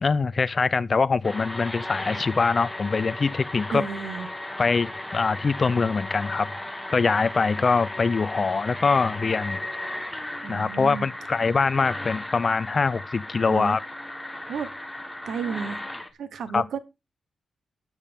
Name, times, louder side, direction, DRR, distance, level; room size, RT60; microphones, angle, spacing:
voice 1, 0.0-3.8 4.6-6.5 6.9-9.6 10.5-13.8 16.5-16.6, left 4 dB, 35° left, 0.4 m, -23 dB
sound 1, 1.2-16.1, left 1 dB, 5° left, 1.2 m, -36 dB
voice 2, 3.7-4.3 10.4-11.1 13.5-13.8 14.5-14.7 15.3-15.8 16.2-16.8, right 6 dB, 75° right, 1.0 m, -32 dB
13.5 x 7.4 x 3.5 m
wide cardioid pair, 140°, 0 cm